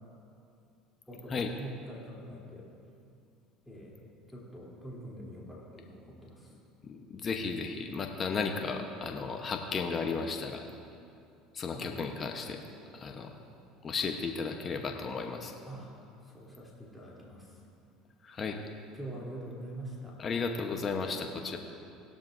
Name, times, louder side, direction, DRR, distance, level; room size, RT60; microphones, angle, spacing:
voice 1, 1.1-2.6 3.7-3.9 4.3-6.5 11.7-12.0 15.7-15.9 16.2-17.5 18.9-20.2, right 1 dB, 5° left, -6 dB, 3.2 m, -44 dB
voice 2, 6.8-10.6 11.5-12.6 12.9-13.3 13.8-15.5 18.2-18.6 20.2-21.6, left 5 dB, 35° left, 4 dB, 1.0 m, -34 dB
17.0 x 12.5 x 2.6 m, 2.6 s
supercardioid pair, 85°, 0 cm